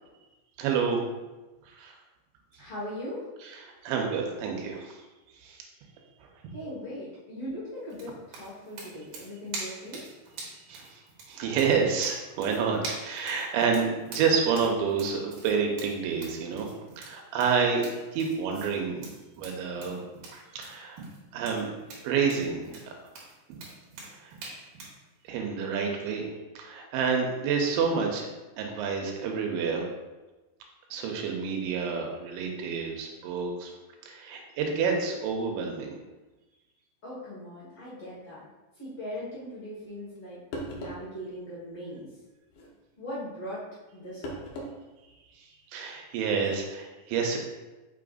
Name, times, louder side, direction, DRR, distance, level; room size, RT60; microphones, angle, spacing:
voice 1, 0.6-1.0 1.7-1.9 3.4-5.0 5.4-5.6 10.7-11.0 11.3-16.7 17.0-19.1 19.4-20.0 20.3-21.0 21.3-21.7 22.0-22.9 23.5-23.6 24.2-24.3 25.3-26.3 26.6-28.3 28.6-29.8 30.9-33.7 34.1-36.0 45.0-45.1 45.7-47.4, right 5 dB, 85° right, 1 dB, 3.0 m, -29 dB
voice 2, 2.6-3.3 6.5-10.1 37.0-38.4 38.8-40.4 40.7-42.1 43.0-43.6 43.9-44.5, equal, 90° left, -9 dB, 1.2 m, -39 dB
sound 1, 7.9-25.0, right 3 dB, 65° right, 2.3 m, -44 dB
sound 2, 40.2-40.3 40.5-41.1 42.5-42.7 44.2-44.8 45.1-45.2 46.4-46.5, equal, 75° left, 2.1 m, -38 dB
6.8 x 5.6 x 2.5 m, 1.1 s
omnidirectional pair, 5.4 m